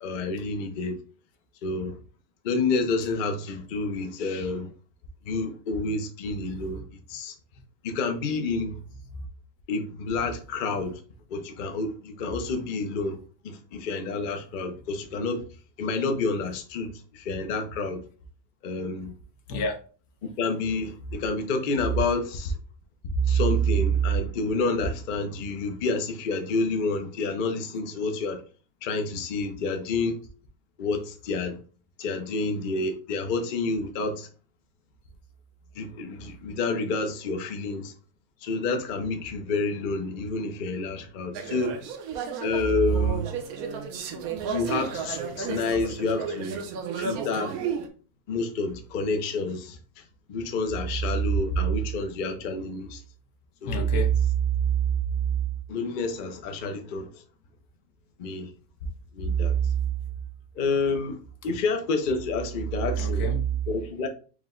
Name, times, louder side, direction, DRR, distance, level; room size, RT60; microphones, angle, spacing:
voice 1, 0.0-1.0 1.6-2.0 2.4-4.7 5.2-7.3 7.8-8.8 9.7-11.0 11.3-13.2 13.4-15.4 15.8-18.0 18.6-19.1 20.2-22.5 23.3-28.4 28.8-30.2 30.8-31.6 32.0-34.3 35.8-37.9 38.4-41.7 42.4-43.3 44.1-46.6 47.0-47.6 48.3-49.8 50.3-53.0 53.6-53.9 55.7-57.2 58.2-58.5 59.1-59.6 60.6-61.2 61.4-63.3 63.7-64.1, left 3 dB, 55° left, 0.5 m, -29 dB
sound 1, 41.3-47.9, right 6 dB, 75° right, 1.1 m, -33 dB
voice 2, 53.7-54.8 55.1-55.4 59.2-59.6 63.0-63.5, right 6 dB, 85° left, 1.3 m, -24 dB
4.8 x 2.1 x 3.6 m
omnidirectional pair, 1.6 m